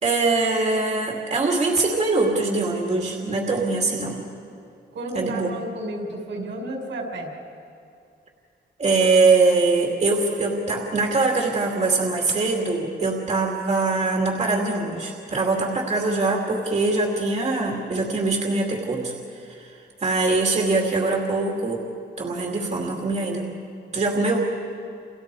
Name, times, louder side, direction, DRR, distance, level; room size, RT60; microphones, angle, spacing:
voice 1, 0.0-4.2 5.1-5.5 8.8-19.1 19.5-19.7 20.0-21.8 22.2-23.6 23.9-24.5, right 3 dB, 35° right, -1 dB, 2.5 m, -22 dB
voice 2, 4.9-7.3, right 1 dB, 80° right, 1 dB, 5.0 m, -32 dB
29.0 x 29.0 x 4.8 m, 2.5 s
wide cardioid pair, 160°, 19 cm